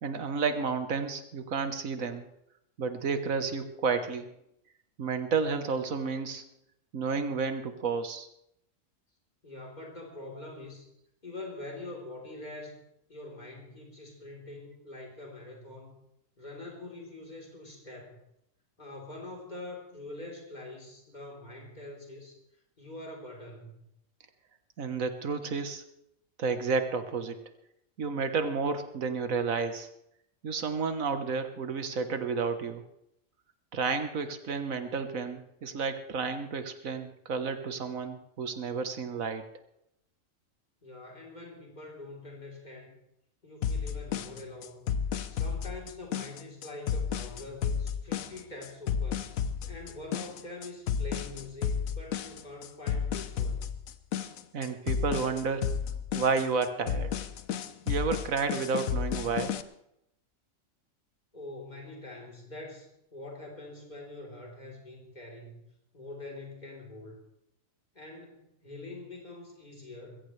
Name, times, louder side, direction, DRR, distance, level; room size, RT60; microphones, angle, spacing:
voice 1, 0.0-2.3 2.8-4.3 5.0-6.4 6.9-8.3 24.8-25.8 26.4-27.4 28.0-29.9 30.4-32.8 33.7-39.5 54.5-55.8 56.1-57.1 57.9-59.6, right 5 dB, 80° right, 8 dB, 1.7 m, -31 dB
voice 2, 9.4-10.9 11.2-12.8 13.1-16.0 16.4-18.2 18.8-22.4 22.8-23.9 40.8-43.0 43.4-45.0 45.3-49.3 49.7-53.7 61.3-65.6 65.9-67.2 67.9-70.2, left 2 dB, 30° left, 0 dB, 4.0 m, -44 dB
sound 1, 43.6-59.6, left 7 dB, 90° left, 1.2 m, -32 dB
21.5 x 15.5 x 3.3 m, 0.79 s
omnidirectional pair, 1.4 m